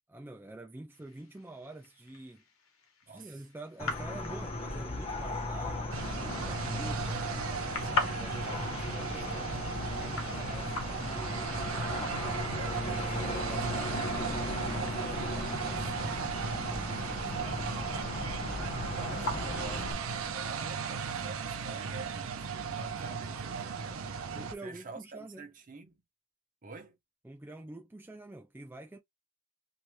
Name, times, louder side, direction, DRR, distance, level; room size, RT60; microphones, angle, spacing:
voice 1, 0.1-2.4 3.1-7.3 7.8-11.5 14.5-14.8 16.5-17.1 24.3-25.5 27.2-29.0, right 2 dB, 10° right, 0.4 m, -47 dB
sound 1, 0.9-20.4, left 3 dB, 80° left, 1.0 m, -44 dB
voice 2, 3.1-3.4 12.4-16.3 16.9-17.7 18.9-24.1 24.6-26.0 26.6-27.0, right 3 dB, 40° right, 0.9 m, -47 dB
sound 2, 3.8-19.9, left 2 dB, 30° left, 0.7 m, -37 dB
sound 3, 5.9-24.5, right 5 dB, 80° right, 0.6 m, -36 dB
3.1 x 2.7 x 2.2 m
head